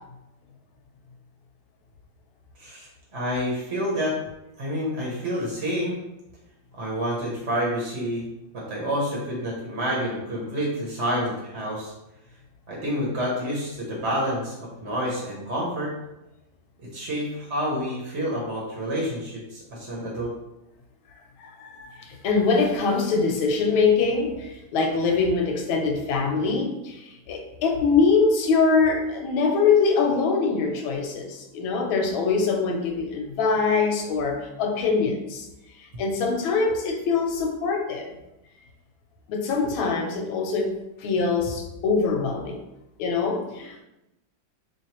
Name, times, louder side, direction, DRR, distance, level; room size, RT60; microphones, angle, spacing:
voice 1, 2.6-4.1 4.6-6.0 6.7-8.3 8.5-11.9 12.7-15.9 16.8-20.3, equal, 50° right, -5 dB, 0.9 m, -28 dB
voice 2, 21.4-35.5 35.8-38.1 39.3-42.6 43.0-43.8, left 4 dB, 90° left, 2 dB, 1.5 m, -23 dB
3.6 x 3.1 x 2.9 m, 0.91 s
omnidirectional pair, 2.2 m